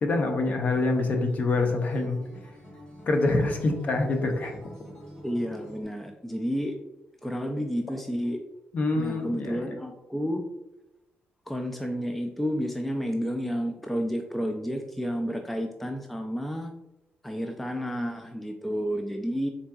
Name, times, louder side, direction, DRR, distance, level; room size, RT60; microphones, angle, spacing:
voice 1, 0.0-2.2 3.1-4.6 8.7-9.7, left 2 dB, 45° left, 4 dB, 0.6 m, -25 dB
Acoustic guitar, 0.7-5.8, equal, 20° left, 1.0 m, -48 dB
voice 2, 5.2-6.8 7.2-8.4 8.9-10.4 11.5-16.7 17.2-19.5, equal, 5° left, 4 dB, 0.3 m, -31 dB
4.0 x 3.5 x 2.3 m, 0.93 s
cardioid pair, 125°, 4 cm